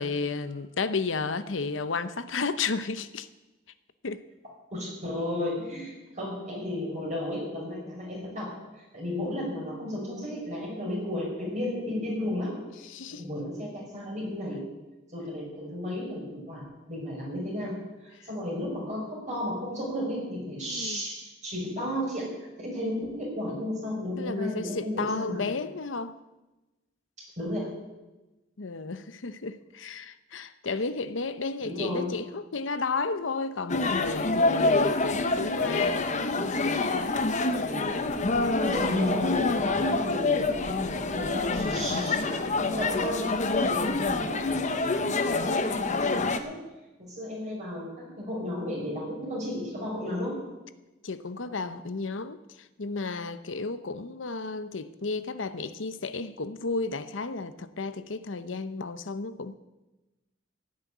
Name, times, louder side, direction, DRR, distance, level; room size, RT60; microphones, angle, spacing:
voice 1, 0.0-3.3 4.0-4.2 9.1-9.4 12.9-13.2 20.6-21.0 24.2-26.1 28.6-36.1 51.0-52.4 52.8-59.6, left 4 dB, 80° left, 13 dB, 0.8 m, -33 dB
voice 2, 4.7-12.6 13.2-14.6 15.1-17.8 18.0-25.4 27.4-27.7 31.6-32.2 37.7-38.1 38.6-43.3 43.6-46.6 47.0-50.4, left 1 dB, 40° right, -3 dB, 5.7 m, -34 dB
sound 1, 33.7-46.4, left 3 dB, 40° left, 0.9 m, -26 dB
16.0 x 6.5 x 9.5 m, 1.1 s
head